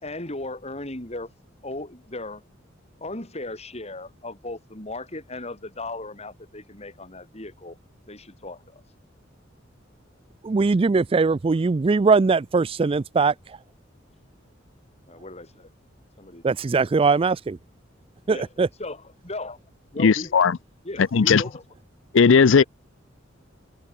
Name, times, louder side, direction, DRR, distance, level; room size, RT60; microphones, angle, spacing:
voice 1, 0.0-1.3 1.6-2.4 3.0-7.8 8.1-8.8 15.1-15.7 16.2-16.4 18.3-18.5 18.8-19.6 19.9-20.4 20.8-21.6 22.6-22.7, left 2 dB, 35° left, 5.3 m, -36 dB
voice 2, 10.4-13.6 16.4-17.3 18.3-18.7, right 4 dB, 30° right, 0.4 m, -21 dB
voice 3, 20.0-20.6 21.1-21.4 22.1-22.6, left 5 dB, 80° left, 0.5 m, -16 dB
head